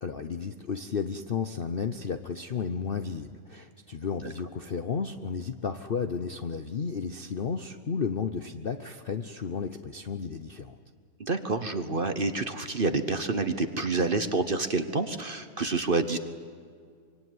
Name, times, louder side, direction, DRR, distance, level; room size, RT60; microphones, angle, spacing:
voice 1, 0.0-10.8, left 6 dB, 50° left, 8 dB, 0.7 m, -33 dB
voice 2, 11.2-16.2, right 3 dB, 35° right, 9 dB, 1.1 m, -28 dB
25.0 x 24.0 x 9.6 m, 2.1 s
omnidirectional pair, 1.8 m